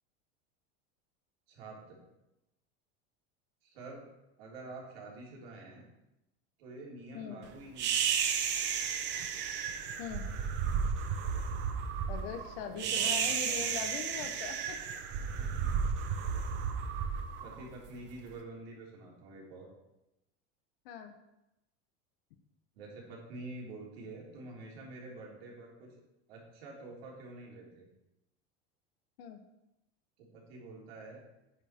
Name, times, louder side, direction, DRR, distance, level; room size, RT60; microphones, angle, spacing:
voice 1, 1.5-2.0 3.6-4.1 4.4-5.8 6.6-8.2 12.1-14.2 15.2-15.7 17.4-19.7 22.7-26.0 26.3-27.8 30.2-31.2, right 2 dB, 85° right, -2 dB, 3.3 m, -48 dB
sound 1, 7.8-18.1, right 7 dB, 35° right, 0.9 m, -33 dB
voice 2, 10.0-10.3 12.1-14.8 20.8-21.2 29.2-29.4, left 7 dB, 75° left, 6 dB, 1.1 m, -41 dB
8.7 x 7.1 x 4.5 m, 0.91 s
supercardioid pair, 160°, 30 cm